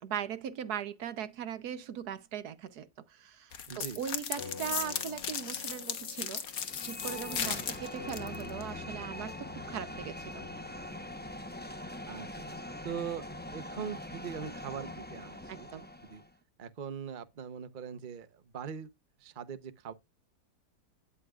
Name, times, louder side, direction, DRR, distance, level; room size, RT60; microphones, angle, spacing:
voice 1, 0.0-10.4 15.5-15.9, right 9 dB, 70° right, 1.4 m, -39 dB
sound 1, 3.5-8.6, left 7 dB, 60° left, 1.6 m, -36 dB
voice 2, 3.7-4.0 7.4-7.7 12.1-12.3 12.8-13.3 13.5-15.7 16.0-16.2 16.6-18.9 19.2-19.9, right 7 dB, 35° right, 0.9 m, -41 dB
sound 2, 4.4-13.1, left 6 dB, 35° left, 1.3 m, -49 dB
sound 3, 6.5-16.3, left 1 dB, 10° left, 0.7 m, -43 dB
13.0 x 10.0 x 2.4 m
omnidirectional pair, 1.8 m